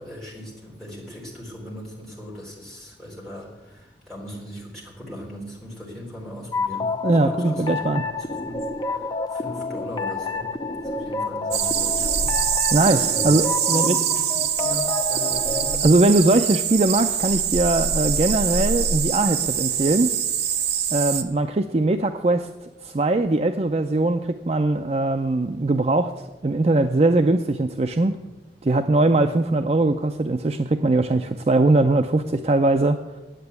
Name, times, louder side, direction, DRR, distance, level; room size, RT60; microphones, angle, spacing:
voice 1, 0.0-6.9 7.2-10.5 10.8-12.3 13.1-13.3 13.7-16.2, equal, ahead, -6 dB, 3.6 m, -39 dB
sound 1, 6.5-15.8, left 3 dB, 25° left, 0.6 m, -29 dB
voice 2, 7.0-8.0 12.7-14.0 15.8-20.1 20.9-22.5 22.8-28.2 28.6-33.2, right 2 dB, 35° right, 7 dB, 0.4 m, -21 dB
sound 2, 11.5-21.2, right 8 dB, 70° right, 0.9 m, -24 dB
9.0 x 8.8 x 9.4 m, 1.1 s
head